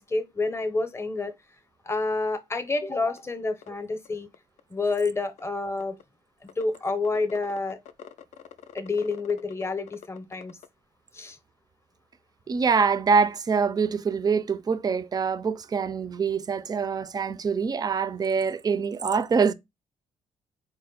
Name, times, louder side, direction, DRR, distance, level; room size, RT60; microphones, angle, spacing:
voice 1, 0.0-1.3 1.8-4.3 4.7-6.0 6.4-7.8 8.7-10.6 11.1-11.4, left 3 dB, 20° left, 0.7 m, -28 dB
sound 1, 3.2-3.3 3.6-3.7 4.1-4.2 4.3-4.9 5.4-6.0 6.5-10.7, left 9 dB, 65° left, 0.4 m, -45 dB
voice 2, 12.5-19.5, right 5 dB, 30° right, 0.4 m, -25 dB
4.2 x 2.1 x 3.9 m
cardioid pair, 105°, 13 cm